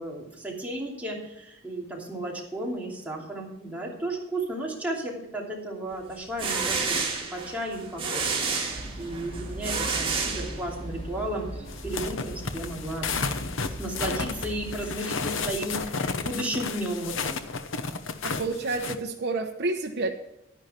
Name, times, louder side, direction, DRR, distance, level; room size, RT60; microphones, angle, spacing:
voice 1, 0.0-8.7 9.0-13.1 13.8-17.4, right 1 dB, 10° right, -3 dB, 2.9 m, -34 dB
sound 1, 6.1-11.0, right 4 dB, 25° right, 2.6 m, -30 dB
sound 2, 8.7-14.9, right 1 dB, 30° left, 3.4 m, -39 dB
sound 3, 11.7-19.0, left 4 dB, 70° left, 0.9 m, -32 dB
voice 2, 18.4-20.1, right 3 dB, 55° right, 1 dB, 1.0 m, -29 dB
11.0 x 10.5 x 4.4 m, 0.90 s
head